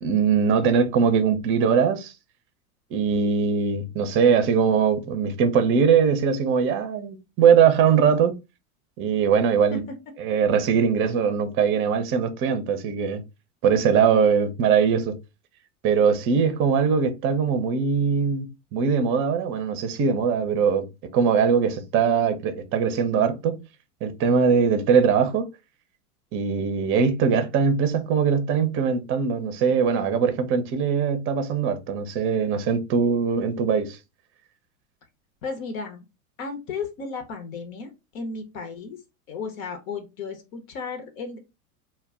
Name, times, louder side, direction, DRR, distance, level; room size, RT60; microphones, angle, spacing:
voice 1, 0.0-2.1 2.9-8.3 9.0-9.8 10.2-13.2 13.6-15.2 15.8-20.9 21.1-23.6 24.0-25.5 26.3-34.0, right 6 dB, 30° right, 0.5 m, -21 dB
voice 2, 35.4-36.1 36.4-39.0 39.3-41.4, left 4 dB, 65° left, 0.8 m, -34 dB
2.2 x 2.1 x 3.5 m
hypercardioid pair, 105°, 44 cm